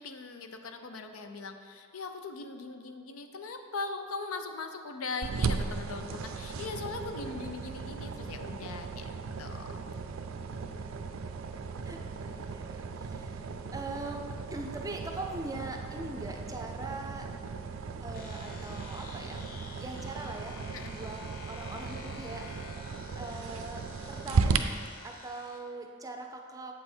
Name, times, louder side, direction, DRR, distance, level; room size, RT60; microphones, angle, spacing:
voice 1, 0.0-9.1 9.4-9.8 20.7-21.0, left 3 dB, 80° left, 7 dB, 0.5 m, -40 dB
sound 1, 5.2-24.6, right 5 dB, 70° right, 0.4 m, -36 dB
voice 2, 11.8-14.2 14.5-17.3 18.0-19.5 19.8-21.2 21.5-22.5 23.2-24.6 25.0-26.7, right 2 dB, 15° right, 3 dB, 0.5 m, -41 dB
sound 2, 18.1-25.6, left 3 dB, 45° left, 0.7 m, -49 dB
7.7 x 5.5 x 4.4 m, 2.3 s
head